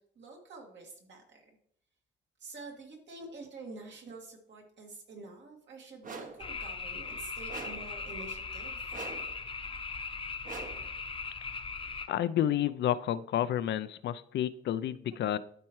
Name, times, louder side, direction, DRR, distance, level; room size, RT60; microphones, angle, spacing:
voice 1, 0.2-1.4 2.4-8.9, right 3 dB, 65° right, 0 dB, 2.1 m, -48 dB
sound 1, 6.0-6.5 7.5-8.0 8.9-9.4 10.4-10.9, right 4 dB, 40° right, 1.0 m, -43 dB
sound 2, 6.4-12.1, left 4 dB, 25° left, 0.8 m, -39 dB
voice 2, 12.1-15.4, left 11 dB, 65° left, 14 dB, 0.4 m, -30 dB
12.0 x 4.5 x 3.1 m, 0.64 s
cardioid pair, 90°, 20 cm